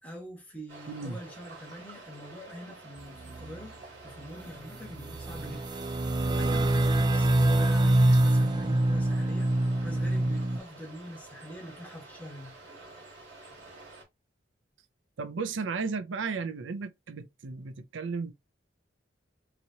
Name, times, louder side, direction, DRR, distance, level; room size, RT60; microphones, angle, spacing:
voice 1, 0.0-5.7 6.4-9.5 9.8-12.5, equal, 10° left, 1.4 m, -44 dB
sound 1, 0.7-14.0, right 3 dB, 65° right, 2.4 m, -49 dB
voice 2, 0.9-1.2 15.2-18.3, right 4 dB, 85° right, 0.5 m, -34 dB
sound 2, 3.0-3.7 4.3-4.4 4.7-10.6, right 1 dB, 25° right, 0.4 m, -25 dB
4.1 x 3.0 x 2.7 m
head